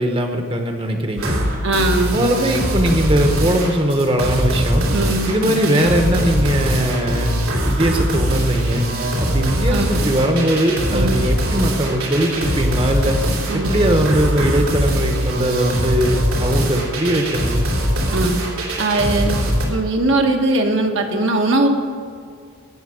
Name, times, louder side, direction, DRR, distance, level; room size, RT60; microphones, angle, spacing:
voice 1, 0.0-1.4 2.1-4.9 5.3-7.3 7.6-8.8 9.2-13.2 13.5-17.7, right 1 dB, 25° right, 4 dB, 1.1 m, -20 dB
sound 1, 1.2-19.7, equal, 80° right, 2.8 m, -21 dB
voice 2, 1.6-2.2 4.9-5.3 9.7-9.9 10.9-11.2 13.5-13.7 18.1-18.4 18.8-19.3 19.7-21.8, right 2 dB, 60° right, 2 dB, 1.3 m, -19 dB
18.0 x 6.4 x 6.4 m, 2.2 s
head